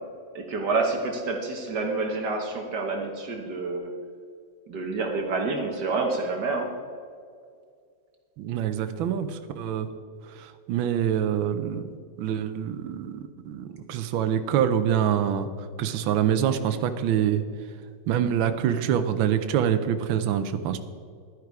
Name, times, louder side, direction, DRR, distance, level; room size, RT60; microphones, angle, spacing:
voice 1, 0.3-3.9 4.7-6.7, right 3 dB, 60° right, 2 dB, 1.7 m, -28 dB
voice 2, 8.4-9.9 10.3-15.5 15.8-17.4 18.1-20.8, right 9 dB, 85° right, 9 dB, 1.5 m, -25 dB
11.5 x 9.7 x 4.7 m, 2.2 s
omnidirectional pair, 2.1 m